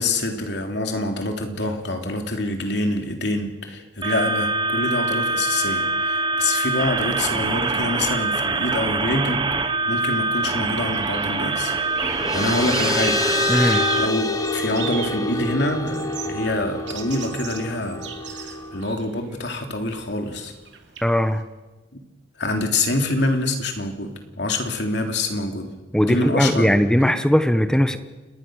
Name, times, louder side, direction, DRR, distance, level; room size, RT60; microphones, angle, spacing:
voice 1, 0.0-13.2 13.6-18.1 18.3-20.5 21.9-22.0 22.4-25.7 26.0-26.7, left 2 dB, 65° left, 4 dB, 3.4 m, -26 dB
sound 1, 4.0-14.1, right 3 dB, 25° right, 1.3 m, -24 dB
sound 2, 10.4-21.4, right 7 dB, 75° right, 3.1 m, -38 dB
sound 3, 11.7-18.9, left 2 dB, 20° left, 1.3 m, -27 dB
voice 2, 13.5-13.8 21.0-21.4 25.9-28.0, equal, 5° left, 10 dB, 1.2 m, -19 dB
29.5 x 20.0 x 6.5 m, 1.2 s
head